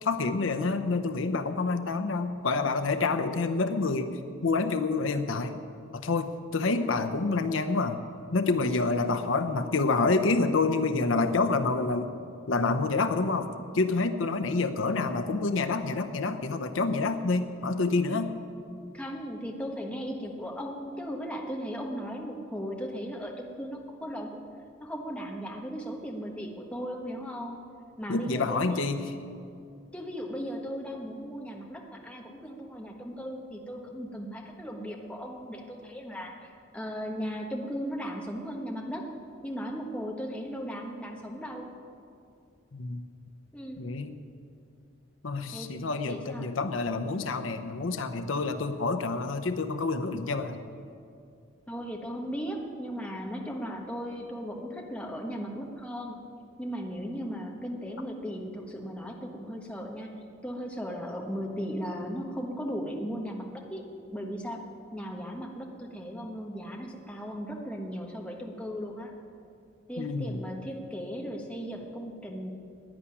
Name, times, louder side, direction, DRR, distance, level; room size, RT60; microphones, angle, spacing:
voice 1, 0.0-5.6 5.9-8.0 8.3-12.1 12.5-18.3 28.1-29.0 42.7-43.0 43.8-44.1 45.2-50.6 70.0-70.4, left 3 dB, 80° left, 9 dB, 0.8 m, -28 dB
voice 2, 18.9-24.4 24.8-27.6 28.0-28.9 29.9-39.1 39.4-41.7 43.5-43.8 45.5-46.5 51.7-56.2 56.6-60.1 60.4-63.8 64.1-64.6 64.9-69.1 69.9-72.5, equal, 5° left, 0 dB, 1.4 m, -37 dB
11.5 x 9.9 x 9.7 m, 2.4 s
head